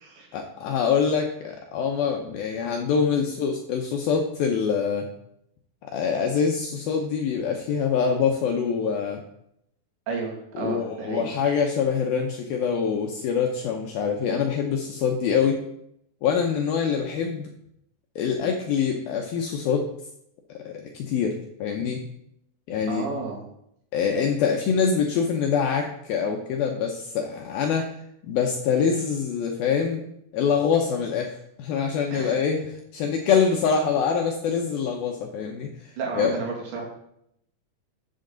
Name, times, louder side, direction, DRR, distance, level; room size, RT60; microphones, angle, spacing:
voice 1, 0.3-5.1 5.8-9.2 10.6-15.6 16.2-17.5 18.2-19.9 20.6-22.1 22.7-23.1 23.9-27.9 28.2-30.0 30.3-36.4, left 6 dB, 80° left, 2 dB, 2.2 m, -25 dB
voice 2, 10.1-11.3 22.9-23.4 32.1-32.4 33.4-33.5 36.0-36.9, right 4 dB, 75° right, -1 dB, 4.6 m, -32 dB
13.0 x 7.7 x 3.9 m, 0.76 s
omnidirectional pair, 5.2 m